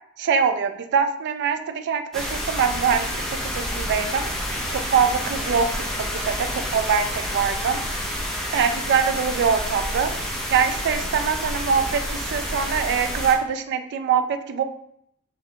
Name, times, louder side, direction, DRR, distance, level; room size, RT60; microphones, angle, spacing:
voice 1, 0.2-4.3 4.7-6.5 6.7-7.8 8.5-10.2 10.5-14.6, right 6 dB, 55° right, 9 dB, 0.3 m, -23 dB
sound 1, 2.1-13.3, equal, ahead, 0.6 m, -29 dB
4.2 x 2.1 x 2.7 m, 0.70 s
head